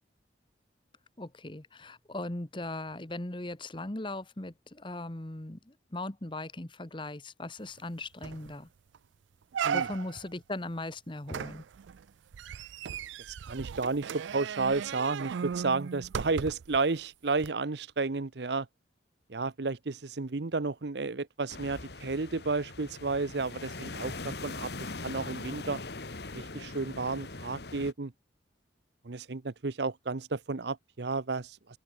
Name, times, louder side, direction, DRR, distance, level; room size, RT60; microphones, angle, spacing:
voice 1, 1.2-8.7 9.7-11.6, left 2 dB, 25° left, 1.2 m, -39 dB
sound 1, 7.8-7.9 8.2-8.5 8.9-9.0 9.5-10.3 11.3-16.8 17.4-17.5, right 7 dB, 80° right, 0.4 m, -36 dB
voice 2, 13.3-18.7 19.3-25.8 26.3-28.1 29.0-31.8, right 3 dB, 65° right, 0.8 m, -32 dB
sound 2, 21.5-27.9, left 3 dB, 60° left, 1.5 m, -41 dB
open air
head